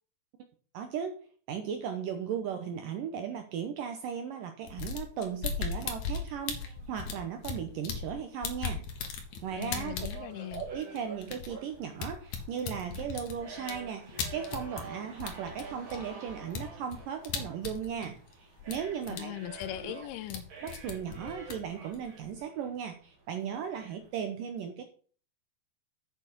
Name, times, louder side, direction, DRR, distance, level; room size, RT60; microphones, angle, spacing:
voice 1, 0.7-1.2 1.5-8.9 9.4-10.0 10.5-19.3 19.8-19.9 20.6-24.8, right 7 dB, 75° right, 6 dB, 2.1 m, -37 dB
sound 1, 4.7-8.1 8.4-14.9 15.2-18.3 18.6-19.2 19.5-20.4 20.7-22.3, left 6 dB, 60° left, 2.1 m, -37 dB
sound 2, 5.6-24.1, right 5 dB, 40° right, 2.1 m, -50 dB
voice 2, 9.6-10.6 19.1-20.4, left 13 dB, 80° left, 12 dB, 2.5 m, -39 dB
7.2 x 6.9 x 6.0 m, 0.43 s
omnidirectional pair, 4.7 m